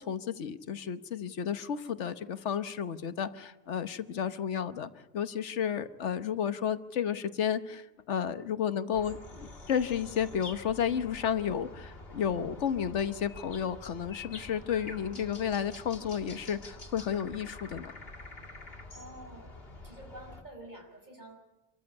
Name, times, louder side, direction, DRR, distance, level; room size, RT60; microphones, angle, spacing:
voice 1, 0.0-17.9, left 8 dB, 85° left, 12 dB, 1.3 m, -32 dB
sound 1, 8.9-20.4, left 2 dB, 55° left, 2.5 m, -47 dB
voice 2, 18.9-19.6 19.8-21.4, right 1 dB, 40° right, 3 dB, 5.8 m, -48 dB
27.0 x 14.0 x 9.7 m, 1.0 s
omnidirectional pair, 1.2 m